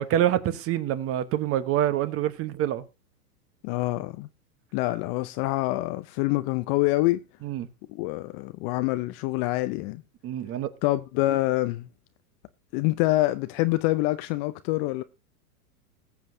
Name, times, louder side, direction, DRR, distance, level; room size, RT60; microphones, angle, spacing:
voice 1, 0.0-2.8 7.4-7.7 10.2-10.7, right 12 dB, 30° right, 1.1 m, -26 dB
voice 2, 3.6-4.3 4.7-7.2 7.9-10.0 10.8-11.9 12.7-15.0, left 18 dB, 30° left, 0.5 m, -26 dB
20.0 x 7.6 x 2.7 m
hypercardioid pair, 115°, 47 cm